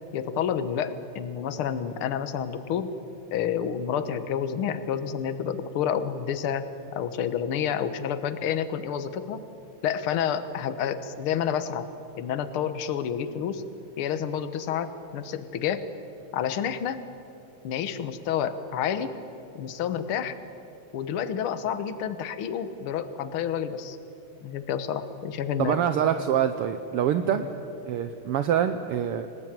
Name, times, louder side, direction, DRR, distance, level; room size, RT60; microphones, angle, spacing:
voice 1, 0.1-2.9 3.3-6.7 6.9-9.4 9.8-11.9 12.2-13.6 14.0-15.8 16.3-17.1 17.6-19.1 19.5-20.3 20.9-24.0 24.4-25.8, left 8 dB, 55° left, 11 dB, 1.7 m, -29 dB
voice 2, 25.6-27.4 27.9-29.3, right 9 dB, 75° right, 9 dB, 1.3 m, -25 dB
27.5 x 19.5 x 9.1 m, 2.8 s
omnidirectional pair, 3.5 m